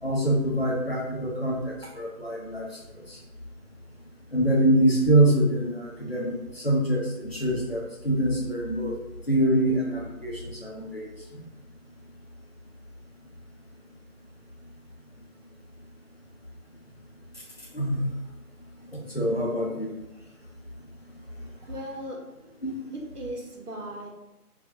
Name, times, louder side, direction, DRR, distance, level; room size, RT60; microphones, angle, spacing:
voice 1, 0.0-2.7 3.1-3.2 4.3-9.0 9.3-11.4 17.7-18.1 18.9-19.9 22.6-22.7, right 1 dB, 45° left, -2 dB, 0.6 m, -25 dB
voice 2, 21.7-22.2 23.1-24.1, right 1 dB, 80° right, 0 dB, 1.0 m, -37 dB
3.4 x 2.4 x 2.7 m, 0.96 s
figure-of-eight pair, 165°, 45 cm